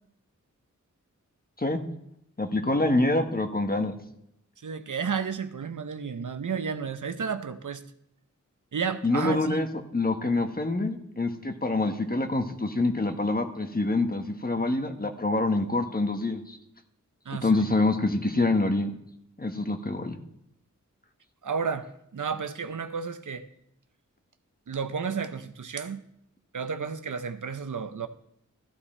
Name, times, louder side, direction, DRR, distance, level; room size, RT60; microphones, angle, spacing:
voice 1, 2.4-4.0 9.0-9.7 9.9-16.6 17.4-18.9 19.4-20.2, left 2 dB, 30° left, 1.3 m, -26 dB
voice 2, 4.6-7.8 8.7-9.6 17.3-17.6 21.4-23.5 24.7-26.0 26.5-28.1, right 6 dB, 80° right, 0.8 m, -32 dB
14.0 x 9.9 x 4.4 m
wide cardioid pair, 70°, 31 cm